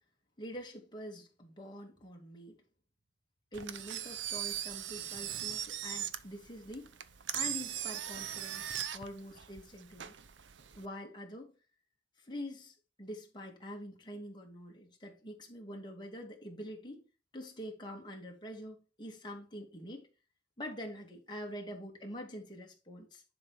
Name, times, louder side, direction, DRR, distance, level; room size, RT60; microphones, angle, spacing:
voice 1, 0.4-2.6 3.5-6.9 7.3-10.1 10.7-11.5 12.2-17.0 17.3-20.1 20.6-23.2, equal, 25° left, 2.4 m, -45 dB
Engine, 3.5-10.9, right 10 dB, 80° right, 0.7 m, -39 dB
10.5 x 4.9 x 4.4 m
head